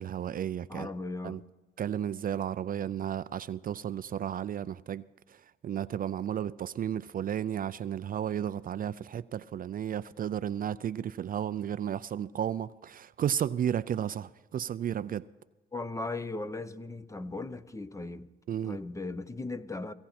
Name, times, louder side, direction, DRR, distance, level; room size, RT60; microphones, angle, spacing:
voice 1, 0.0-0.9 1.2-1.4 1.8-15.3 18.5-18.8, right 9 dB, 45° right, 0.4 m, -33 dB
voice 2, 0.7-1.4 15.7-18.3 18.6-19.9, left 2 dB, 15° left, 0.7 m, -37 dB
17.5 x 16.5 x 4.3 m
cardioid pair, 90°, 20 cm